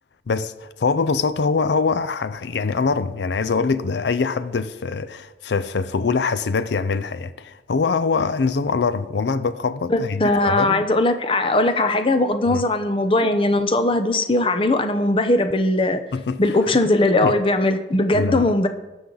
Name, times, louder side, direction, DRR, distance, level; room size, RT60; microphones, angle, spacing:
voice 1, 0.3-10.8 12.5-12.6 16.1-16.6 17.2-17.3 18.1-18.7, left 4 dB, 80° left, 0.5 m, -23 dB
voice 2, 9.9-16.0 16.4-18.7, left 2 dB, 30° left, 0.7 m, -19 dB
17.5 x 7.1 x 3.9 m
head